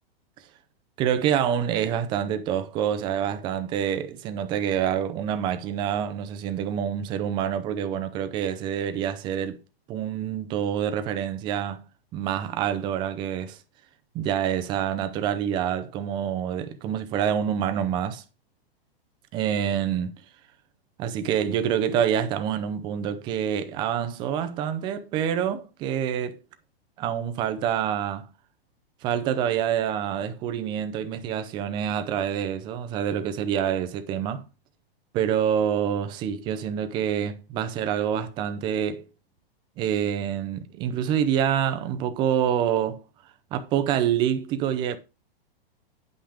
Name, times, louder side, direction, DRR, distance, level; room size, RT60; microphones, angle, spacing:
voice 1, 1.0-9.6 9.9-11.8 12.1-13.6 14.1-18.2 19.3-20.1 21.0-26.4 27.0-28.3 29.0-34.5 35.1-39.1 39.8-43.0 43.5-45.0, right 9 dB, 15° right, 0.6 m, -27 dB
10.0 x 5.8 x 5.0 m
hypercardioid pair, 165°, 31 cm